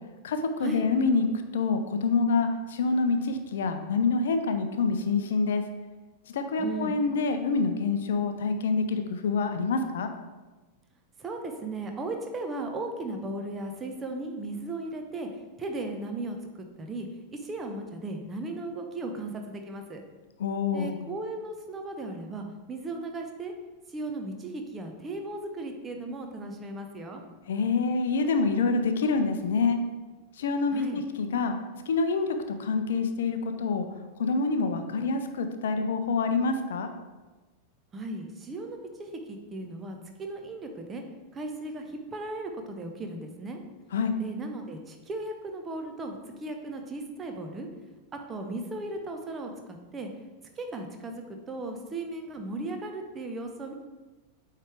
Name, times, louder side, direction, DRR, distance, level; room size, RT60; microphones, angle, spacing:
voice 1, 0.2-1.3 1.5-5.6 6.3-10.1 20.4-21.0 27.5-29.8 30.4-31.5 31.9-33.9 34.2-36.9 43.9-44.1, left 4 dB, 60° left, 7 dB, 0.5 m, -26 dB
voice 2, 6.6-6.9 11.2-15.3 15.6-16.4 16.8-20.0 20.7-23.5 23.9-27.2 30.7-31.0 37.9-41.0 41.3-43.6 44.2-47.7 48.3-50.1 50.6-53.7, right 2 dB, 20° right, 4 dB, 0.8 m, -36 dB
8.4 x 3.3 x 3.4 m, 1.2 s
figure-of-eight pair, 90°, 0 cm